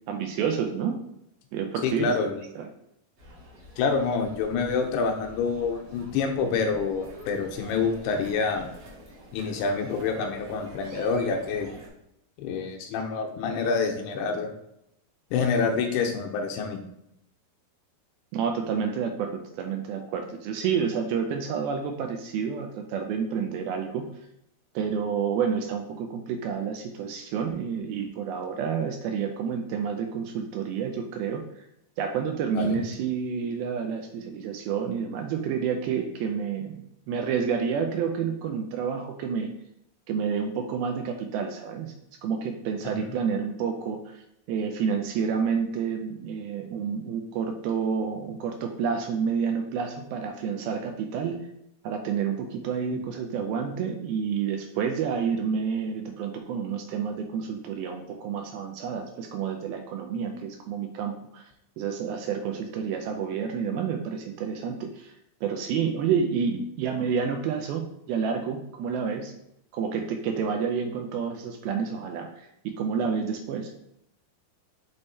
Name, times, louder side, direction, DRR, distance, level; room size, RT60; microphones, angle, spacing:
voice 1, 0.1-1.0 1.5-2.7 18.3-24.1 24.8-31.4 32.0-39.5 40.1-41.9 42.2-44.2 44.5-51.4 51.8-61.5 61.8-65.2 65.4-69.3 69.7-72.3 72.7-73.7, right 6 dB, 85° right, 4 dB, 2.3 m, -29 dB
voice 2, 1.8-2.4 3.8-8.7 9.3-11.7 12.4-14.5 15.3-16.8 32.5-32.8, left 5 dB, 85° left, 4 dB, 2.7 m, -27 dB
sound 1, 3.2-11.9, right 1 dB, 55° right, 1.3 m, -45 dB
6.8 x 3.6 x 4.1 m, 0.79 s
omnidirectional pair, 4.7 m